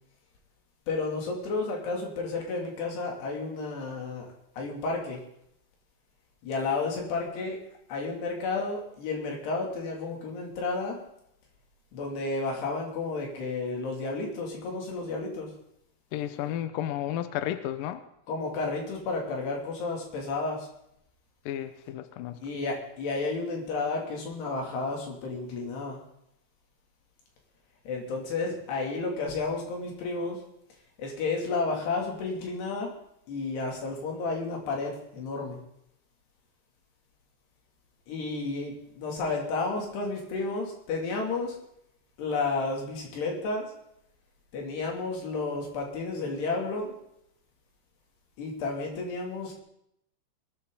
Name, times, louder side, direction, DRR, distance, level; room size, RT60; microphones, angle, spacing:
voice 1, 0.9-4.2 4.6-5.2 6.4-7.6 7.9-11.0 11.9-15.5 18.3-20.7 22.4-26.0 27.8-30.4 31.0-32.9 33.3-35.6 38.1-41.6 42.2-43.7 44.5-46.9 48.4-49.6, left 3 dB, 65° left, 0 dB, 4.8 m, -32 dB
voice 2, 16.1-18.1 21.5-22.4, left 12 dB, 85° left, 10 dB, 2.0 m, -32 dB
21.0 x 13.5 x 4.0 m, 0.76 s
omnidirectional pair, 5.1 m